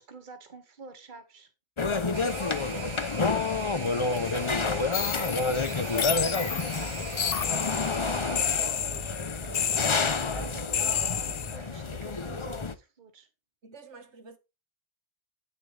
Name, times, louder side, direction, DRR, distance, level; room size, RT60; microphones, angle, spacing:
voice 1, 0.0-1.5 4.2-9.2 9.4-9.7 10.2-13.3, right 4 dB, 45° right, 1.5 m, -48 dB
sound 1, 1.8-12.7, left 4 dB, 30° left, 0.7 m, -29 dB
voice 2, 1.8-3.5 13.6-14.4, right 2 dB, 75° right, 1.7 m, -48 dB
sound 2, 2.1-8.7, right 6 dB, 90° right, 1.7 m, -41 dB
sound 3, 4.9-11.6, left 8 dB, 60° left, 0.9 m, -31 dB
9.3 x 6.9 x 3.3 m
omnidirectional pair, 1.2 m